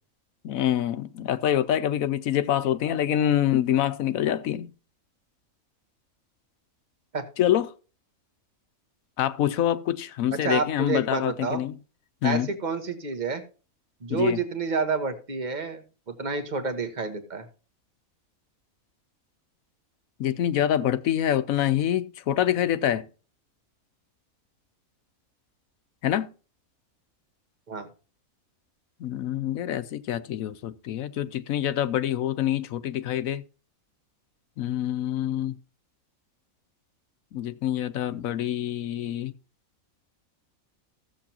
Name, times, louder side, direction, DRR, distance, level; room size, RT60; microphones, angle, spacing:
voice 1, 0.4-4.7 7.4-7.7 9.2-11.8 12.2-12.5 14.1-14.4 20.2-23.1 26.0-26.3 29.0-33.4 34.6-35.6 37.3-39.3, left 11 dB, 75° left, 1.1 m, -26 dB
voice 2, 10.4-11.6 12.2-13.4 14.0-17.4 27.7-27.9, right 4 dB, 35° right, 1.3 m, -29 dB
15.5 x 7.5 x 2.9 m
omnidirectional pair, 1.5 m